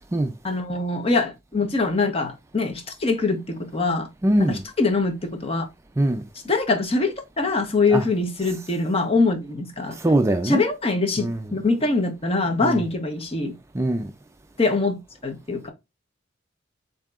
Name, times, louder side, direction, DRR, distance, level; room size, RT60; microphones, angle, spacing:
voice 1, 0.4-4.1 4.4-5.7 6.4-10.0 10.4-13.5 14.6-15.7, left 3 dB, 30° left, 0.9 m, -23 dB
voice 2, 4.2-4.6 6.0-6.2 7.9-8.0 10.0-10.6 11.2-11.4 12.6-12.8 13.7-14.1, right 1 dB, 15° right, 0.3 m, -22 dB
7.2 x 2.8 x 2.4 m
head